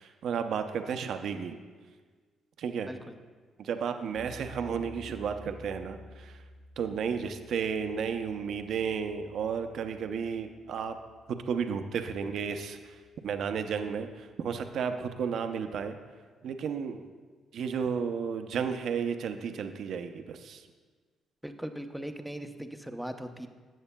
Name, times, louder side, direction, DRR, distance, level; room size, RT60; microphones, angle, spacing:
voice 1, 0.0-1.6 2.6-2.9 3.6-6.4 6.8-11.0 11.3-16.0 16.4-17.1 17.5-20.7, right 6 dB, 70° right, 7 dB, 0.5 m, -33 dB
sound 1, 4.2-15.1, left 1 dB, 45° left, 1.6 m, -53 dB
voice 2, 21.4-23.5, equal, ahead, 6 dB, 0.6 m, -39 dB
14.0 x 7.9 x 2.2 m, 1.5 s
cardioid pair, 90°, 0 cm